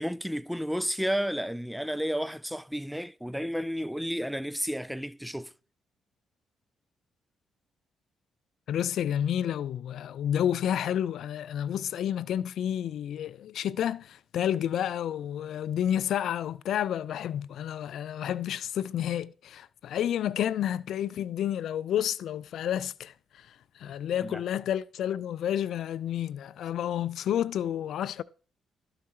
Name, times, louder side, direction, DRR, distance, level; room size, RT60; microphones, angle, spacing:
voice 1, 0.0-5.5 23.8-23.9 24.2-24.4, equal, ahead, 0.3 m, -32 dB
voice 2, 8.7-28.2, left 10 dB, 75° left, 0.3 m, -30 dB
12.5 x 4.7 x 4.4 m
supercardioid pair, 65°, 0 cm